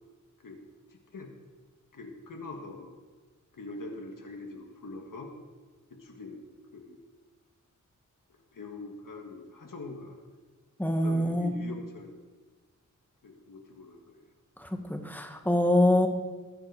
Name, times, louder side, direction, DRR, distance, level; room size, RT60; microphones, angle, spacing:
voice 1, 0.9-1.3 1.9-3.0 3.5-5.3 5.9-6.4 6.7-7.0 8.3-10.2 10.8-12.2 13.2-14.2, left 3 dB, 80° left, 2 dB, 1.7 m, -43 dB
voice 2, 10.8-11.6 14.6-16.1, left 1 dB, 5° left, 4 dB, 1.6 m, -25 dB
20.0 x 7.8 x 4.9 m, 1.3 s
wide cardioid pair, 80°, 32 cm